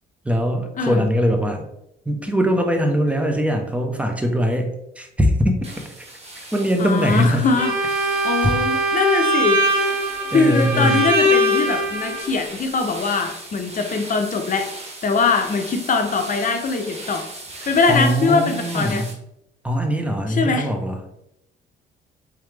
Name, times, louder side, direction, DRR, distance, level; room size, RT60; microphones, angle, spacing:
voice 1, 0.2-1.7 2.1-4.7 5.0-6.1 6.5-7.5 10.3-11.0 17.9-19.1 19.6-21.0, equal, 5° right, 3 dB, 0.7 m, -21 dB
voice 2, 0.8-1.1 6.8-8.0 8.2-9.6 10.3-14.7 15.0-17.2 17.7-19.0 20.3-20.7, left 4 dB, 40° left, 5 dB, 0.7 m, -22 dB
sound 1, 5.6-19.1, right 2 dB, 30° right, 1.0 m, -38 dB
Bowed string instrument, 7.6-12.3, right 1 dB, 70° right, 1.2 m, -21 dB
3.7 x 3.1 x 3.2 m, 0.81 s
cardioid pair, 90°, 20 cm